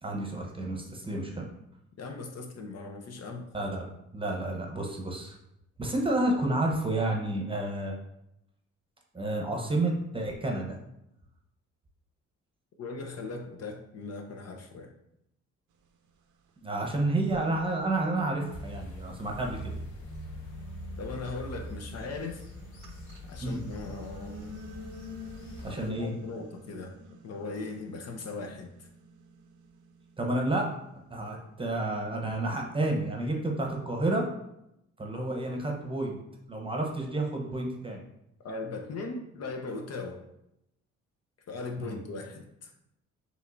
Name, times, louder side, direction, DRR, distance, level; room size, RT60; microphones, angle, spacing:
voice 1, 0.0-1.5 3.5-5.3 5.8-7.9 9.1-10.8 16.6-19.6 23.4-23.6 25.6-26.1 30.2-30.7 31.1-34.3 35.0-36.2 36.5-38.0 41.8-42.0, right 2 dB, 15° right, 1 dB, 0.9 m, -30 dB
voice 2, 2.0-3.5 12.8-14.9 21.0-22.4 23.3-24.5 25.6-26.9 27.2-28.9 38.4-40.2 41.5-42.7, left 3 dB, 55° left, 3 dB, 0.7 m, -39 dB
sound 1, 16.5-16.6 17.2-19.5 20.0-31.3, left 1 dB, 80° right, 0.6 m, -49 dB
sound 2, 18.5-25.9, left 1 dB, 90° left, 0.9 m, -43 dB
5.4 x 3.1 x 2.6 m, 0.82 s
cardioid pair, 90°, 30 cm